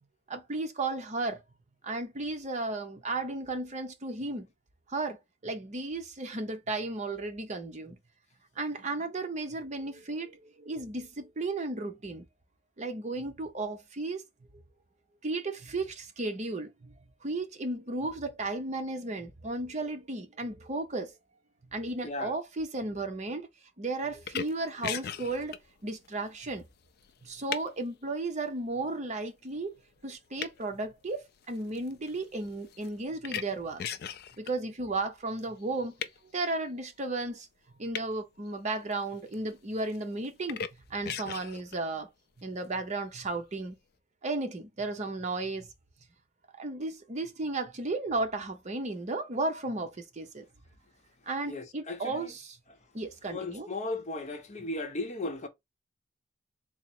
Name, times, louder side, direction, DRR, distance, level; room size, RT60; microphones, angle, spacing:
voice 1, 0.3-1.4 1.8-4.5 4.9-8.0 8.6-12.3 12.8-14.2 14.5-14.6 15.2-16.9 17.2-21.1 21.7-23.5 23.8-25.6 25.8-26.7 27.2-29.7 30.0-33.8 34.4-35.9 36.3-37.5 37.8-40.6 40.9-42.1 42.4-43.8 44.2-45.7 46.6-50.5 51.3-52.6 52.9-53.7, right 2 dB, 40° right, 0.7 m, -34 dB
voice 2, 22.0-22.3 51.5-52.3 52.7-52.8 53.2-55.5, left 2 dB, 35° left, 0.8 m, -36 dB
sound 1, 24.2-27.9 28.5-28.9 29.5-29.8 30.0-34.5 35.4-36.2 37.9-38.1 38.5-39.5 39.8-40.7 41.0-41.8, left 8 dB, 55° left, 0.4 m, -38 dB
3.6 x 2.0 x 4.2 m
head